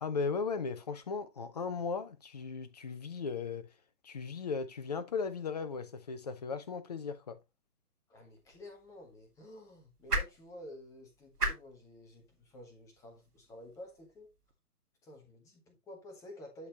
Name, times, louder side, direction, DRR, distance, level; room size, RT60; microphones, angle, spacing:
voice 1, 0.0-3.7 4.0-7.4, left 5 dB, 25° left, 0.7 m, -37 dB
voice 2, 8.1-14.3 15.0-16.7, left 1 dB, 5° left, 1.1 m, -51 dB
sound 1, 8.3-14.5, right 2 dB, 75° right, 2.1 m, -41 dB
11.0 x 4.4 x 2.9 m
figure-of-eight pair, 135°, 46 cm